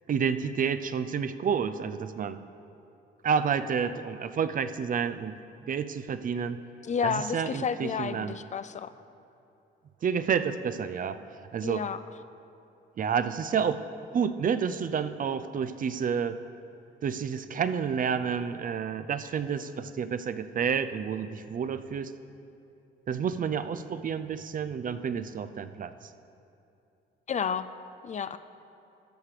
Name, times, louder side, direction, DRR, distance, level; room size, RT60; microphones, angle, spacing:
voice 1, 0.1-2.4 3.2-5.4 5.7-6.6 7.0-8.3 10.0-11.2 11.5-11.8 13.0-13.8 14.1-16.4 17.0-22.1 23.1-25.9, right 7 dB, 45° right, 11 dB, 0.5 m, -29 dB
voice 2, 6.8-8.9 11.6-12.0 27.3-27.7 28.0-28.4, left 6 dB, 35° left, 12 dB, 0.4 m, -31 dB
13.0 x 6.6 x 4.9 m, 2.8 s
cardioid pair, 90°, 20 cm